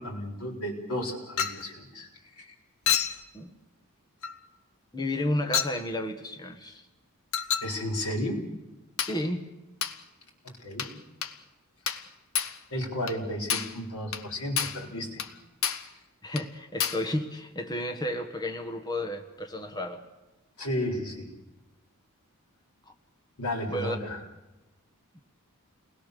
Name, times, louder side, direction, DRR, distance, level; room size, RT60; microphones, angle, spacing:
voice 1, 0.0-2.1 2.4-2.5 7.6-8.4 10.4-10.9 12.7-15.3 20.6-21.3 23.4-24.2, left 1 dB, 90° left, 1 dB, 4.4 m, -33 dB
Chink clink, 1.4-1.7 2.9-3.2 4.2-4.4 5.5-5.8 7.3-7.7 9.0-9.2 9.8-10.0 10.8-11.0 11.2-11.4 11.9-12.1 12.3-12.6 13.1-13.2 13.5-13.8 14.1-14.3 14.6-14.8 15.2-15.3 15.6-15.9 16.4-16.5 16.8-17.1, left 8 dB, 65° left, 1.2 m, -29 dB
voice 2, 4.9-6.8 9.0-9.5 16.2-20.1 23.7-24.0, left 1 dB, 20° left, 5 dB, 1.4 m, -32 dB
29.5 x 20.5 x 6.8 m, 1.1 s
head